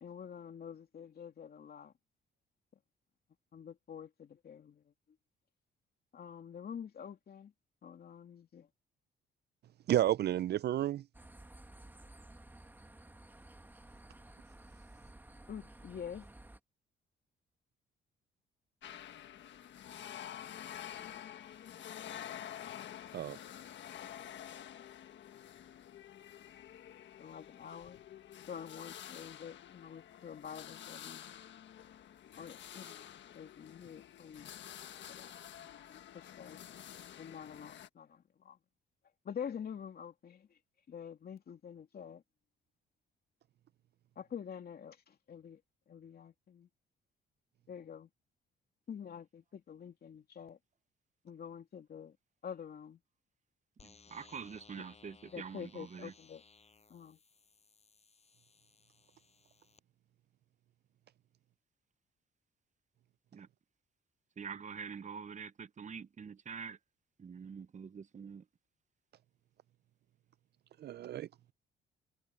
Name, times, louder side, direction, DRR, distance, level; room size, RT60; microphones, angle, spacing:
voice 1, 0.0-1.9 3.5-4.8 6.1-7.5 7.8-8.7 15.5-16.3 27.2-28.0 28.5-31.4 32.4-33.1 33.3-34.5 35.1-36.8 37.2-38.6 39.2-40.5 40.9-42.2 44.2-45.6 45.9-46.7 47.7-48.1 48.9-50.6 51.2-52.2 52.4-53.0 55.3-56.4 56.9-57.2, left 8 dB, 50° left, 2.8 m, -47 dB
voice 2, 9.9-11.0 23.1-23.4 70.8-71.3, right 12 dB, 55° right, 0.4 m, -31 dB
sound 1, 11.1-16.6, right 1 dB, 10° right, 1.6 m, -54 dB
sound 2, 18.8-37.9, left 10 dB, 65° left, 1.4 m, -49 dB
sound 3, 53.8-59.8, left 4 dB, 35° left, 6.6 m, -62 dB
voice 3, 53.8-56.1 63.3-63.5 64.4-66.8 67.2-68.5, right 6 dB, 40° right, 1.0 m, -45 dB
cardioid pair, 90°, 20 cm